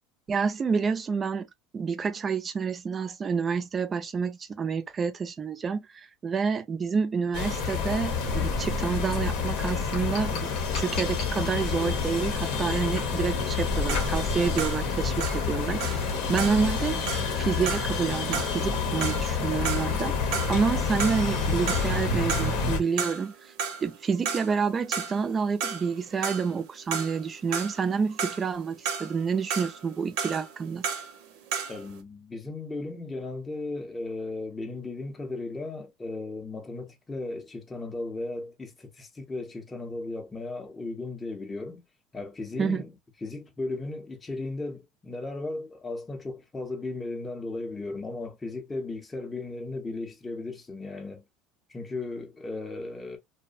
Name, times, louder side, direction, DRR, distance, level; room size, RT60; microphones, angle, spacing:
voice 1, 0.3-1.5 1.7-17.0 17.4-23.5 23.8-30.9 42.6-42.8, right 5 dB, 30° right, 0.4 m, -28 dB
sound 1, 7.3-22.8, left 5 dB, 70° left, 0.8 m, -28 dB
sound 2, 13.7-20.7 21.0-22.0 22.3-23.3 23.6-31.9, right 6 dB, 80° right, 0.7 m, -34 dB
voice 2, 31.7-41.8 42.1-42.9 43.2-51.2 51.7-53.2, left 2 dB, 15° left, 0.6 m, -36 dB
2.6 x 2.1 x 2.4 m
supercardioid pair, 115°, 0 cm